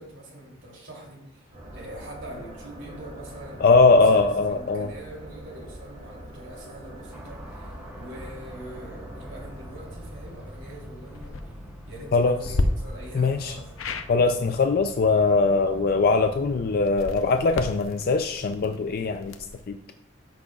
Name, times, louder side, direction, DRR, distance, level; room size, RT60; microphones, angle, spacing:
voice 1, 0.0-13.8, right 1 dB, 65° right, -2 dB, 2.9 m, -43 dB
sound 1, 1.5-12.1, equal, 30° right, 2.5 m, -44 dB
voice 2, 3.6-4.9 12.1-12.5 13.1-13.6 14.1-19.3 19.7-19.8, left 3 dB, 45° left, 7 dB, 0.3 m, -21 dB
sound 2, 7.1-17.0, equal, 5° right, 0.6 m, -44 dB
sound 3, 11.1-11.4 12.4-12.7 13.8-14.1 16.8-19.7, left 3 dB, 85° left, 0.6 m, -32 dB
13.0 x 6.1 x 2.3 m, 0.84 s
head